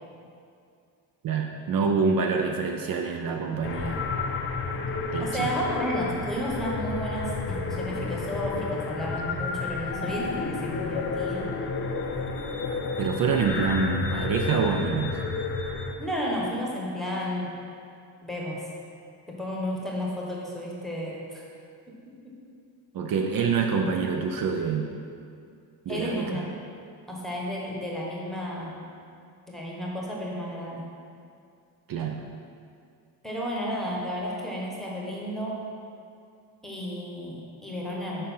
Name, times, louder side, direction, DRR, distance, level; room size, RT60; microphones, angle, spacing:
voice 1, 1.2-4.1 5.1-5.5 13.0-15.1 22.9-24.9 25.9-26.4 31.9-32.2, right 5 dB, 55° right, 3 dB, 0.5 m, -26 dB
sound 1, 3.6-15.9, left 4 dB, 30° left, 0.5 m, -31 dB
voice 2, 5.2-11.6 16.0-17.5 18.2-18.7 19.3-21.4 22.2-22.4 25.9-26.6 27.1-28.8 29.5-30.9 33.2-35.6 36.6-38.2, equal, ahead, -4 dB, 1.1 m, -32 dB
6.7 x 5.2 x 5.5 m, 2.4 s
cardioid pair, 170°, 41 cm